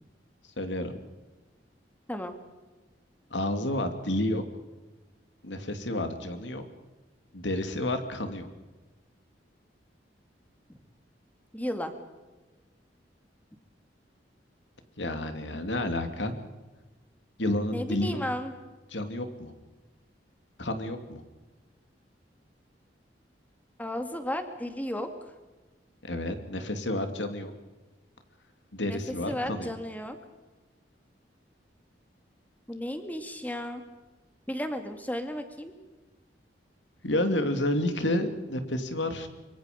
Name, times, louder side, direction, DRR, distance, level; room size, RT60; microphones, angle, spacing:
voice 1, 0.6-1.0 3.3-4.4 5.4-6.6 7.3-8.5 15.0-16.3 17.4-18.2 18.9-19.5 20.6-21.2 26.0-27.5 28.7-29.7 37.0-39.3, left 1 dB, 85° left, 7 dB, 2.8 m, -30 dB
voice 2, 11.5-11.9 17.7-18.5 23.8-25.1 28.8-29.0 29.3-30.2 32.7-33.8 34.5-35.7, left 1 dB, 10° left, 7 dB, 2.3 m, -34 dB
25.5 x 23.5 x 5.3 m, 1.2 s
head